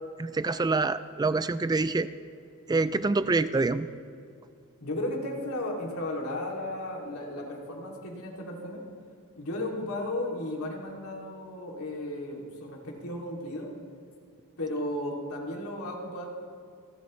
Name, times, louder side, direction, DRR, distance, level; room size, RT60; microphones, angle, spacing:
voice 1, 0.2-2.1 2.7-3.9, right 3 dB, 20° right, 13 dB, 0.3 m, -26 dB
voice 2, 4.8-8.8 9.3-13.7 14.6-16.3, left 1 dB, 80° left, -1 dB, 2.9 m, -34 dB
28.5 x 12.0 x 3.3 m, 2.4 s
head